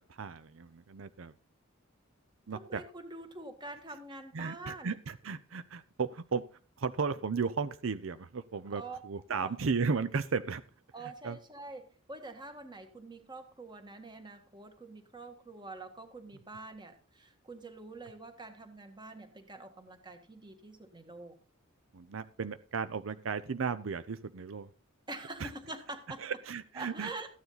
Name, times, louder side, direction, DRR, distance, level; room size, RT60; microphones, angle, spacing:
voice 1, 0.2-1.3 2.5-2.8 4.3-6.4 6.8-10.6 11.2-11.4 21.9-24.7 25.4-25.5 26.2-27.1, right 5 dB, 70° right, 13 dB, 0.6 m, -35 dB
voice 2, 2.5-5.0 8.8-9.0 9.3-9.6 10.9-21.3 25.1-26.3 26.7-27.3, right 2 dB, 20° right, 6 dB, 1.7 m, -46 dB
14.5 x 9.5 x 4.0 m, 0.40 s
head